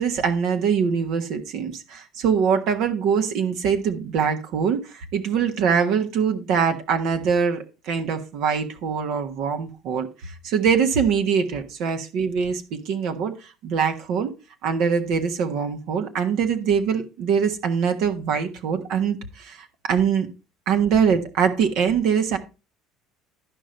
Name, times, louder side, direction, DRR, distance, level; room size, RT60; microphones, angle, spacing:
voice 1, 0.0-14.3 14.6-20.3 20.7-22.4, right 6 dB, 70° right, 1.3 m, -23 dB
12.0 x 5.2 x 4.4 m
cardioid pair, 115°, 0 cm